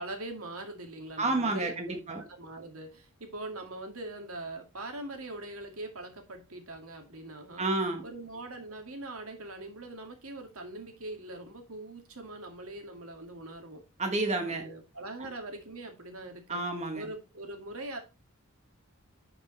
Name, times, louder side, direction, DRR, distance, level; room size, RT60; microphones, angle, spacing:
voice 1, 0.0-7.7 8.0-13.8 14.5-16.6 16.9-18.0, right 2 dB, 70° right, 4 dB, 2.1 m, -42 dB
voice 2, 1.2-2.2 7.6-8.0 14.0-14.6 16.5-17.1, right 2 dB, 30° right, 3 dB, 1.4 m, -30 dB
11.5 x 5.3 x 3.2 m, 0.30 s
head